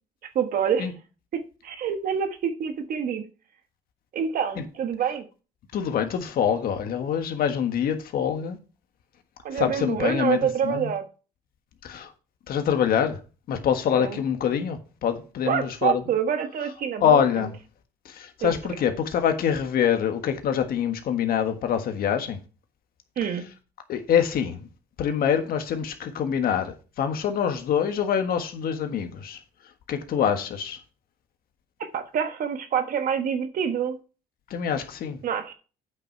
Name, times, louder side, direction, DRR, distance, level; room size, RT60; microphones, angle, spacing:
voice 1, 0.3-0.9 1.3-3.2 4.1-5.3 9.4-11.1 13.9-14.2 15.5-17.5 18.4-18.5 23.2-23.5 31.8-34.0 35.2-35.5, right 8 dB, 55° right, 1.3 m, -27 dB
voice 2, 5.7-8.6 9.5-10.9 11.8-12.1 12.5-13.2 13.5-16.0 17.0-17.5 18.0-22.4 23.9-24.7 25.0-29.4 29.9-30.8 34.5-35.2, left 8 dB, 60° left, 1.5 m, -25 dB
8.5 x 6.0 x 4.6 m
cardioid pair, 110°, 17 cm